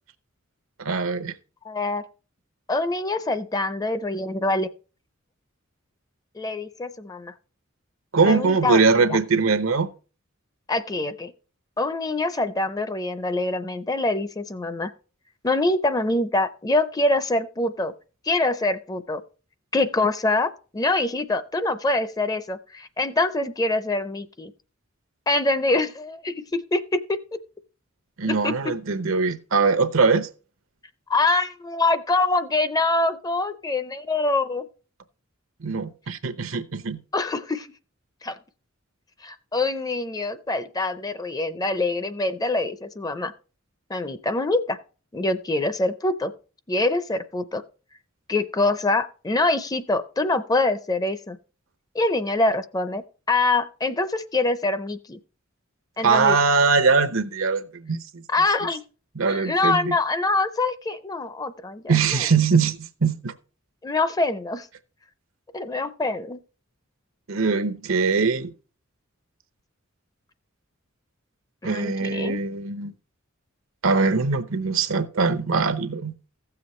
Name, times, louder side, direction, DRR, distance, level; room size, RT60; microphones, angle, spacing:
voice 1, 0.8-1.3 8.1-9.9 28.2-30.3 35.6-37.0 56.0-58.2 59.2-60.0 61.9-63.3 67.3-68.5 71.6-72.9 73.8-76.1, right 4 dB, 85° right, 0.8 m, -22 dB
voice 2, 1.6-2.0 2.7-4.7 6.4-7.3 8.2-8.8 9.1-9.2 10.7-11.3 11.8-14.9 15.4-17.9 18.3-19.2 19.7-24.5 25.3-27.4 28.2-28.7 31.1-34.7 37.1-37.7 38.2-38.4 39.2-43.3 43.9-44.8 45.1-46.3 46.7-47.6 48.3-51.4 51.9-55.2 56.0-56.4 58.3-58.8 59.3-61.9 63.8-64.7 65.5-66.4 71.6-72.4, left 2 dB, 20° left, 0.5 m, -25 dB
15.5 x 7.0 x 3.1 m
head